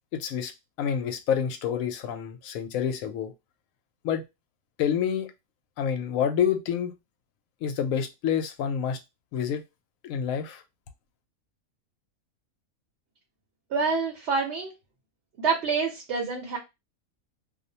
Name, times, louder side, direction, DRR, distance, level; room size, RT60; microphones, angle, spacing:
voice 1, 0.1-0.5 0.8-3.3 4.0-4.2 4.8-5.3 5.8-6.9 7.6-9.0 9.3-9.6 10.0-10.6, left 8 dB, 75° left, 1.0 m, -28 dB
voice 2, 13.7-14.7 15.4-16.6, right 5 dB, 60° right, 0.9 m, -27 dB
2.6 x 2.1 x 2.7 m
omnidirectional pair, 1.5 m